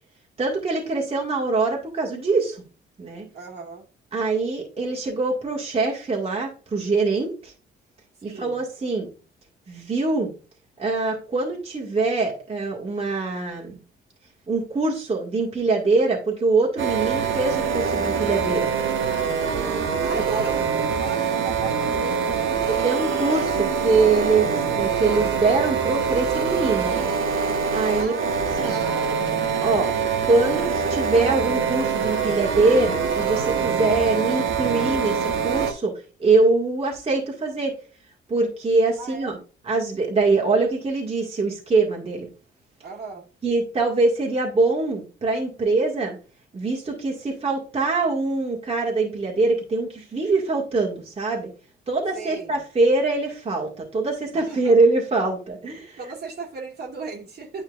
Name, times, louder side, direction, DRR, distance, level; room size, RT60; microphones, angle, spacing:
voice 1, 0.4-2.6 3.0-3.3 4.1-7.5 8.2-9.1 9.7-10.3 10.8-13.8 14.5-18.7 20.1-20.5 22.8-27.1 27.7-28.1 28.6-28.8 29.6-29.9 30.3-37.8 38.3-39.4 39.6-42.3 43.4-46.2 46.5-51.5 51.9-56.0, right 3 dB, 30° right, -2 dB, 1.9 m, -23 dB
voice 2, 3.3-3.9 8.2-8.6 20.0-22.6 27.9-29.8 39.0-39.4 42.8-43.3 52.1-52.6 54.5-54.8 56.0-57.6, right 4 dB, 55° right, -1 dB, 2.1 m, -37 dB
sound 1, 16.8-35.7, right 6 dB, 80° right, 1.3 m, -24 dB
9.2 x 4.5 x 2.5 m, 0.35 s
cardioid pair, 90°, 20 cm